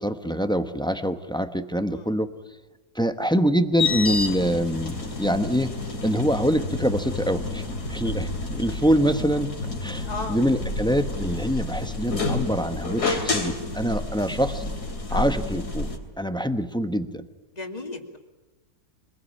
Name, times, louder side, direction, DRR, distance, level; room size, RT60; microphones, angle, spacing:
voice 1, 0.0-2.3 2.9-5.7 6.0-9.6 9.8-14.6 15.1-15.9 16.2-17.3, equal, 5° left, 9 dB, 0.9 m, -25 dB
sound 1, 3.8-16.0, left 3 dB, 85° left, 3.7 m, -29 dB
voice 2, 10.0-10.4 15.1-15.3 17.5-18.2, left 3 dB, 25° left, 4 dB, 2.6 m, -34 dB
25.0 x 21.0 x 9.8 m, 1.1 s
omnidirectional pair, 1.6 m